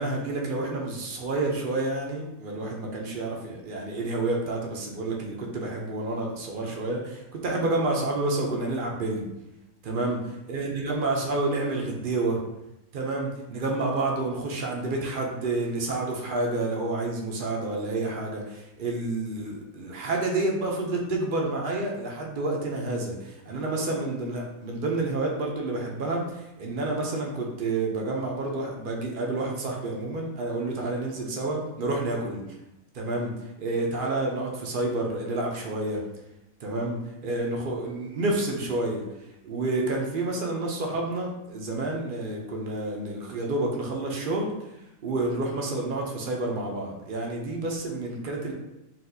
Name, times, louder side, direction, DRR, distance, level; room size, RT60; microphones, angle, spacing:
voice 1, 0.0-9.3 9.8-10.2 10.5-12.4 12.9-32.4 32.9-33.3 33.6-36.0 36.6-39.0 39.4-44.5 45.0-48.5, right 2 dB, 55° right, 0 dB, 0.6 m, -29 dB
4.1 x 2.4 x 2.6 m, 0.90 s
omnidirectional pair, 1.4 m